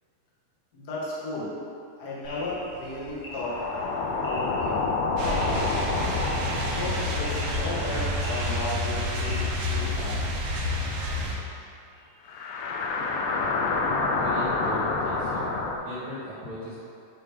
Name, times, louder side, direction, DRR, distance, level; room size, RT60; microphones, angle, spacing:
voice 1, 0.7-1.5 2.0-3.6 4.2-4.8 5.1-6.1 6.7-10.2 12.2-12.4, left 2 dB, 70° left, -7 dB, 0.9 m, -35 dB
sound 1, 2.2-9.3, left 1 dB, 40° left, 1.6 m, -44 dB
sound 2, 3.3-9.9 10.2-10.3 12.3-15.8, left 3 dB, 90° left, 2.3 m, -29 dB
sound 3, 5.2-11.4, left 1 dB, 85° right, 1.3 m, -29 dB
voice 2, 14.1-16.7, left 1 dB, 60° right, -12 dB, 1.0 m, -38 dB
9.0 x 3.4 x 4.9 m, 2.6 s
omnidirectional pair, 4.0 m